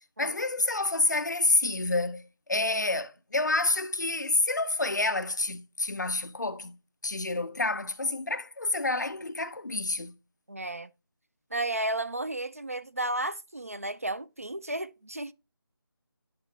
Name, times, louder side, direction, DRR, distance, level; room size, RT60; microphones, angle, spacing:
voice 1, 0.2-6.8 7.0-10.1, left 2 dB, 50° left, 0.7 m, -28 dB
voice 2, 10.5-10.9 11.5-15.3, right 1 dB, 40° right, 0.4 m, -33 dB
10.5 x 3.6 x 3.2 m
figure-of-eight pair, 180°, 12 cm